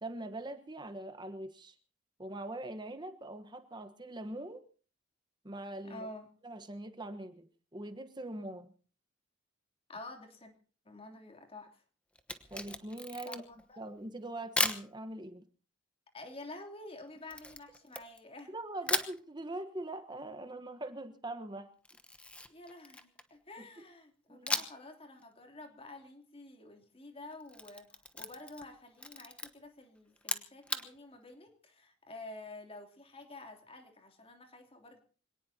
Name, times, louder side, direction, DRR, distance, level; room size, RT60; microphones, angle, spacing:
voice 1, 0.0-1.7 2.2-4.6 5.4-6.1 6.4-8.7 12.5-13.4 13.8-15.4 18.5-21.7 23.6-23.7 24.3-24.5, right 1 dB, 25° right, 9 dB, 1.2 m, -42 dB
voice 2, 5.8-6.3 9.9-10.5 10.8-11.8 13.2-13.8 16.1-18.5 22.5-35.0, left 2 dB, 30° left, 4 dB, 3.1 m, -49 dB
Camera, 12.2-13.6 14.6-14.9 17.3-18.5 18.9-19.2 21.8-23.4 24.5-24.9 25.2-25.3 27.3-28.7 29.0-29.5 30.2-30.9, left 2 dB, 5° left, 1.1 m, -36 dB
26.0 x 18.0 x 2.9 m, 0.40 s
head